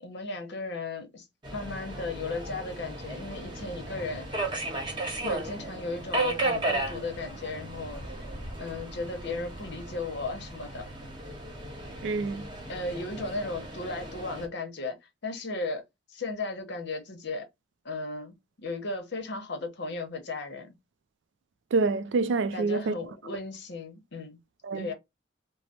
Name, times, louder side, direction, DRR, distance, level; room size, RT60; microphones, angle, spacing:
voice 1, 0.0-1.3 1.5-4.3 5.2-8.0 8.6-10.9 12.7-15.0 15.2-15.8 16.1-17.5 17.8-20.7 22.5-24.4 24.7-24.9, left 3 dB, 65° left, 0.9 m, -35 dB
Subway metro underground, 1.4-14.5, right 2 dB, 25° right, 1.0 m, -35 dB
voice 2, 12.0-12.5 21.7-22.9 24.6-24.9, right 3 dB, 65° right, 0.3 m, -27 dB
3.1 x 2.0 x 2.7 m
head